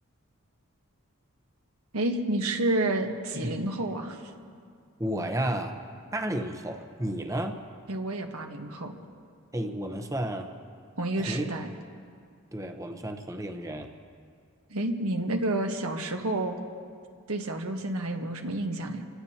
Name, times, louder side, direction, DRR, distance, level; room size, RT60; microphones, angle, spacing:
voice 1, 1.9-4.2 7.9-8.9 11.0-11.7 14.7-16.5 17.3-19.0, right 1 dB, 80° right, 4 dB, 1.4 m, -29 dB
voice 2, 5.0-5.8 6.1-7.6 9.5-10.5 11.2-11.4 12.5-13.9, right 1 dB, 15° right, 5 dB, 0.9 m, -32 dB
26.5 x 16.5 x 2.9 m, 2.3 s
head